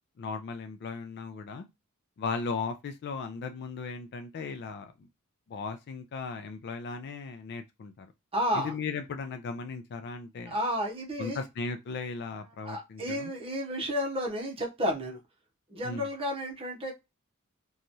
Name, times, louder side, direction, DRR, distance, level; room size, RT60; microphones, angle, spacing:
voice 1, 0.2-1.7 2.2-5.1 5.5-8.1 8.5-10.6 11.2-13.3 15.8-16.1, left 4 dB, 50° left, 0.4 m, -37 dB
voice 2, 8.3-8.7 10.4-11.4 12.6-15.2 15.7-16.9, equal, 25° right, 0.9 m, -31 dB
3.0 x 2.3 x 2.6 m
head